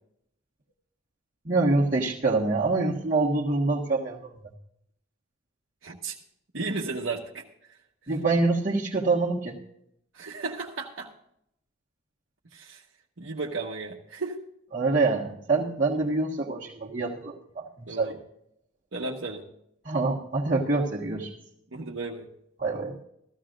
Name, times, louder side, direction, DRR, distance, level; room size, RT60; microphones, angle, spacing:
voice 1, 1.4-4.4 8.1-9.6 14.7-18.1 19.8-21.3 22.6-23.0, right 3 dB, 40° right, -7 dB, 1.6 m, -26 dB
voice 2, 5.8-6.2 6.5-7.4 10.1-11.1 12.5-12.8 13.2-14.4 17.9-18.2 18.9-19.4 21.7-22.3, right 3 dB, 70° right, -2 dB, 1.3 m, -34 dB
15.0 x 14.5 x 2.6 m, 0.74 s
head